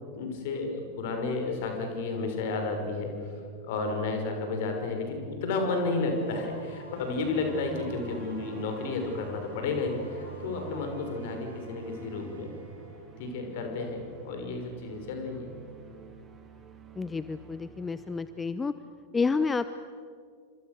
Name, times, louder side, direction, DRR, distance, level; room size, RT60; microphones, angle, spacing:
voice 1, 0.1-3.1 3.7-12.5 13.2-15.5, left 3 dB, 50° left, 4 dB, 5.8 m, -32 dB
sound 1, 6.0-13.5, equal, 85° right, 6.9 m, -52 dB
sound 2, 6.9-18.5, right 7 dB, 20° right, 3.3 m, -48 dB
voice 2, 17.0-18.7 19.1-19.7, left 4 dB, 15° left, 13 dB, 0.8 m, -29 dB
29.5 x 26.0 x 6.8 m, 2.2 s
figure-of-eight pair, 90°, 0 cm